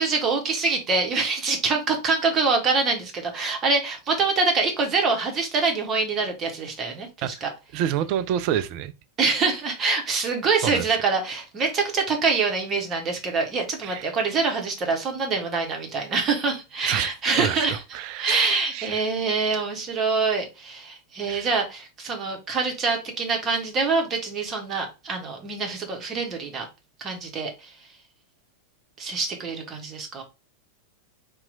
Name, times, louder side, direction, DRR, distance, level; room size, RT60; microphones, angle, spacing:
voice 1, 0.0-7.5 9.2-26.6 27.0-27.7 29.0-30.2, right 4 dB, 25° right, 1.0 m, -25 dB
voice 2, 7.7-8.9 10.6-10.8 13.8-14.0 16.9-19.0 21.3-21.5, right 10 dB, 45° right, 0.3 m, -28 dB
2.9 x 2.2 x 3.8 m
figure-of-eight pair, 90°, 0 cm